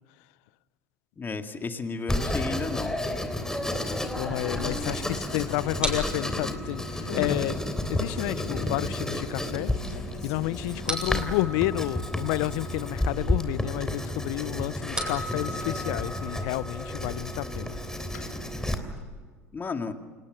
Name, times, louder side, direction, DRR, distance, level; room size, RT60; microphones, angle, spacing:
voice 1, 1.2-2.9 19.5-19.9, left 4 dB, 25° left, 2.2 m, -32 dB
Writing, 2.1-18.7, left 1 dB, 5° left, 3.4 m, -31 dB
sound 1, 4.1-4.2 4.5-6.6 7.1-7.4 7.8-8.8 9.5-11.3 11.6-11.7 15.2-15.8 16.7-18.3, left 5 dB, 85° left, 3.2 m, -43 dB
voice 2, 4.1-7.6 7.9-9.7 10.2-17.8, left 19 dB, 65° left, 0.7 m, -30 dB
sound 2, 4.2-19.0, equal, 10° right, 8.0 m, -40 dB
28.0 x 19.5 x 6.6 m
hypercardioid pair, 75°, 8 cm